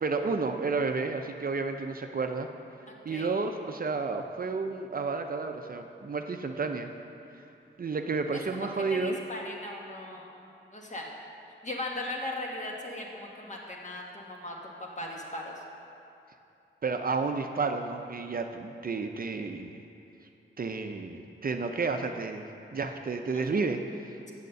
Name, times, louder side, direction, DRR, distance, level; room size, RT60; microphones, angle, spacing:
voice 1, 0.0-2.5 3.1-6.9 7.8-9.2 16.8-19.8 20.6-24.3, right 4 dB, 45° right, 5 dB, 0.5 m, -31 dB
voice 2, 2.9-3.3 8.3-11.1 11.6-14.6 15.0-15.6 23.3-23.7, left 1 dB, 35° left, -1 dB, 1.5 m, -38 dB
7.3 x 6.6 x 6.7 m, 2.7 s
wide cardioid pair, 75°, 21 cm